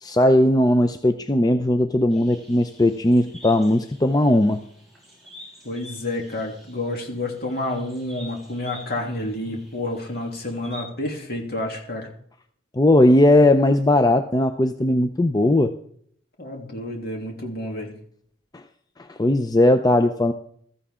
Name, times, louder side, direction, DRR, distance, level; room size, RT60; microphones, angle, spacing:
voice 1, 0.0-4.6 12.8-15.7 18.5-18.6 19.2-20.3, left 1 dB, 20° left, 8 dB, 0.5 m, -18 dB
sound 1, 2.1-10.8, equal, ahead, 7.0 m, -47 dB
voice 2, 5.6-12.1 16.4-17.9, left 1 dB, 55° left, 1 dB, 3.0 m, -29 dB
15.5 x 14.0 x 3.7 m, 0.63 s
head